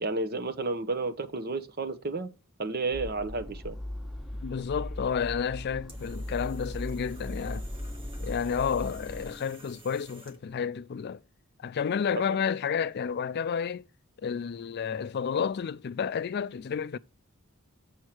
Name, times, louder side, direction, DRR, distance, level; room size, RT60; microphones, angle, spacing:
voice 1, 0.0-2.3 2.6-3.8, right 3 dB, 50° right, 0.9 m, -31 dB
sound 1, 2.9-9.3, left 1 dB, ahead, 1.2 m, -38 dB
voice 2, 4.4-7.6 8.2-11.2 11.6-13.9 14.2-17.0, left 7 dB, 50° left, 0.4 m, -31 dB
sound 2, 5.2-10.6, right 2 dB, 25° right, 1.2 m, -52 dB
7.2 x 6.4 x 4.4 m
head